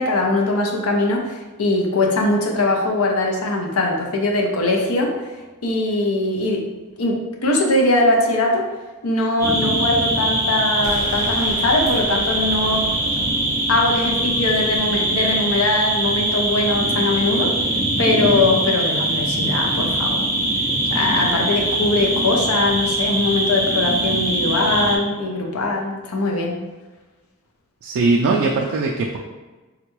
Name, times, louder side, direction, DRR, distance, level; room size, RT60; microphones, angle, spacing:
voice 1, 0.0-5.3 5.6-6.7 7.0-8.7 9.0-12.9 13.7-17.5 18.0-20.3 20.9-26.5, left 2 dB, 75° left, 1 dB, 0.6 m, -21 dB
sound 1, 9.4-25.0, right 1 dB, 15° right, 0.6 m, -22 dB
sound 2, 10.8-16.6, equal, 90° left, 1.2 m, -36 dB
voice 2, 27.8-29.2, right 3 dB, 60° right, -1 dB, 0.3 m, -20 dB
3.6 x 2.2 x 3.0 m, 1.2 s
head